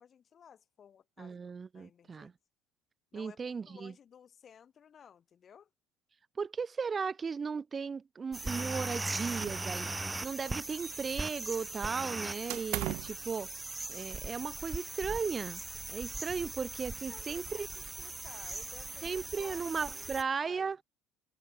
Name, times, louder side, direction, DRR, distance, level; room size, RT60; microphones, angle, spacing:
voice 1, 0.0-1.4 1.7-2.3 3.1-5.7 17.1-20.7, left 8 dB, 45° left, 7.5 m, -56 dB
voice 2, 1.2-2.3 3.1-3.9 6.4-9.9 10.2-13.5 13.9-15.6 15.9-17.7 19.0-20.8, right 5 dB, 35° right, 0.4 m, -36 dB
sound 1, 8.3-20.2, right 2 dB, 15° right, 1.9 m, -39 dB
sound 2, 9.4-10.2 10.4-11.4 12.5-13.2, right 22 dB, 70° right, 0.8 m, -39 dB
hypercardioid pair, 70°, 0 cm